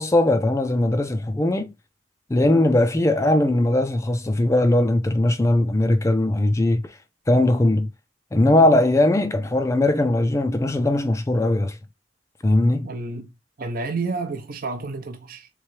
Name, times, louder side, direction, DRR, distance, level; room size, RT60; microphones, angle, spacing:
voice 1, 0.0-1.7 2.3-6.8 7.3-7.9 8.3-11.7 12.4-12.9, left 1 dB, 15° left, 0.4 m, -19 dB
voice 2, 12.8-13.3 13.6-15.5, right 3 dB, 50° right, 0.6 m, -30 dB
3.7 x 3.2 x 3.1 m
head